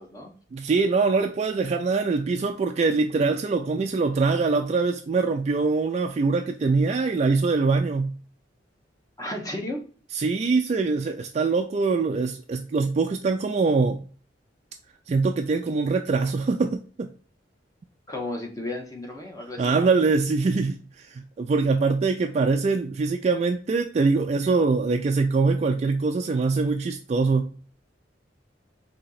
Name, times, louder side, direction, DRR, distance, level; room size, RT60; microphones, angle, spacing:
voice 1, 0.0-0.3 9.2-9.8 18.1-19.8, left 1 dB, 20° left, 0.9 m, -33 dB
voice 2, 0.5-8.2 10.1-14.0 15.1-17.1 19.6-27.5, right 4 dB, 35° right, 0.3 m, -23 dB
4.2 x 2.8 x 3.9 m
head